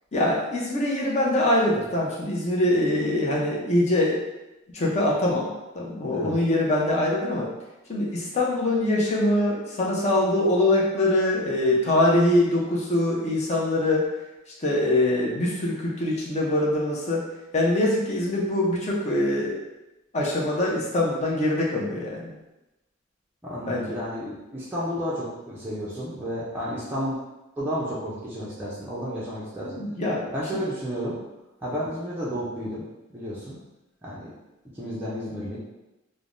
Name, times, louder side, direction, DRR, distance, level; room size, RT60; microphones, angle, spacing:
voice 1, 0.1-4.2 4.7-7.5 7.9-14.1 14.6-17.2 17.5-19.6 20.1-22.3 23.7-24.0 29.6-30.6, left 1 dB, 35° left, -4 dB, 0.6 m, -23 dB
voice 2, 23.4-27.2 27.6-29.8 30.3-31.2 31.6-32.8 33.1-33.6 34.0-34.3 34.7-35.6, equal, 10° right, -9 dB, 0.4 m, -32 dB
3.3 x 2.0 x 2.5 m, 0.99 s
head